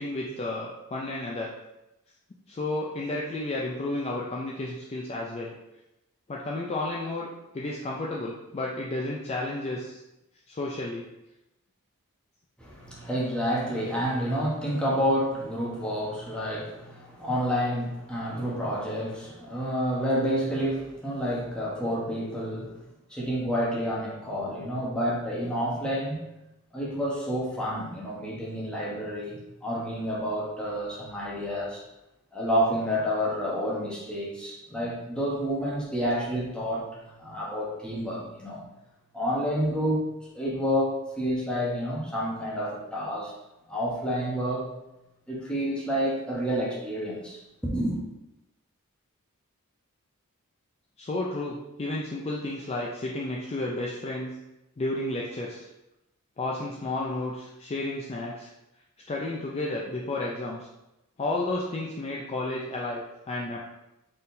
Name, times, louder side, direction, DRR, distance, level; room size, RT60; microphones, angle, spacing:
voice 1, 0.0-1.5 2.5-5.5 6.3-10.0 10.5-11.0 51.0-54.4 54.8-55.7 56.4-58.5 59.1-60.7 61.2-63.6, left 2 dB, 30° left, -3 dB, 0.4 m, -32 dB
voice 2, 12.6-22.8 23.1-26.2 26.7-31.8 32.3-38.6 39.1-40.0 40.3-43.3 43.7-44.6 45.3-47.4 47.7-48.0, equal, 5° left, -6 dB, 1.0 m, -29 dB
4.2 x 3.7 x 2.6 m, 0.93 s
head